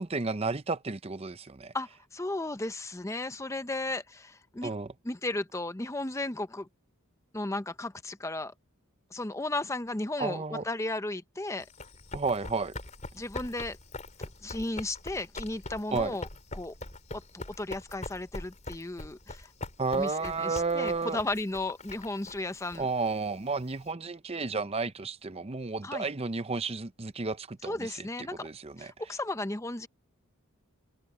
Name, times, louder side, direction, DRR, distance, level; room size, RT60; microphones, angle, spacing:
voice 1, 0.0-1.7 4.6-4.9 10.2-10.6 12.1-12.7 15.9-16.2 19.8-21.2 22.8-28.9, right 4 dB, 25° right, 0.6 m, -32 dB
voice 2, 1.7-4.7 5.0-6.7 7.3-8.5 9.1-11.7 13.1-13.8 14.4-16.3 16.5-16.7 17.1-19.5 19.9-22.9 25.8-26.1 27.6-28.5 28.8-29.9, left 2 dB, 15° left, 0.6 m, -35 dB
Run, 11.6-23.9, left 2 dB, 30° left, 4.2 m, -43 dB
head